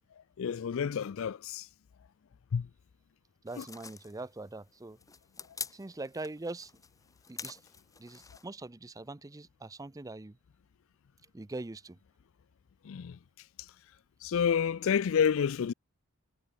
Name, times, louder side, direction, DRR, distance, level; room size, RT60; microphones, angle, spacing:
voice 1, 0.4-1.7 2.5-2.7 3.6-3.7 12.8-13.2 14.2-15.7, left 7 dB, 60° left, 0.4 m, -29 dB
voice 2, 3.4-5.0 5.7-6.7 7.3-7.6 8.0-10.4 11.3-12.0, right 2 dB, 15° right, 0.5 m, -42 dB
sound 1, 3.5-8.5, left 5 dB, 15° left, 1.5 m, -47 dB
head